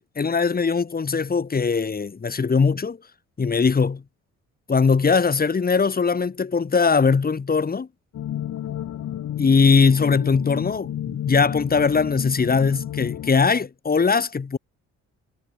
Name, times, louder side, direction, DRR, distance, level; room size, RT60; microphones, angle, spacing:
voice 1, 0.0-3.0 3.4-4.0 4.7-7.9 9.4-14.6, left 5 dB, 30° left, 2.1 m, -20 dB
sound 1, 8.1-13.3, left 11 dB, 70° left, 2.8 m, -31 dB
cardioid pair, 90°, 30 cm